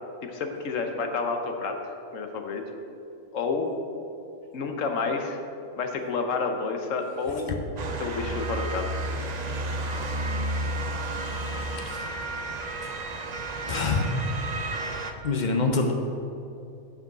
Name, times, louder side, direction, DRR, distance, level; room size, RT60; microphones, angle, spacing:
voice 1, 0.2-2.6 3.3-3.7 4.5-5.4 5.8-7.5 7.8-8.9, left 4 dB, 65° left, 4 dB, 1.1 m, -30 dB
Motor vehicle (road) / Siren, 7.8-15.1, right 2 dB, 75° right, 0.3 m, -32 dB
voice 2, 11.7-12.0 13.7-14.1 15.2-15.9, left 3 dB, 45° left, 3 dB, 0.6 m, -25 dB
7.2 x 5.4 x 6.6 m, 2.7 s
omnidirectional pair, 1.5 m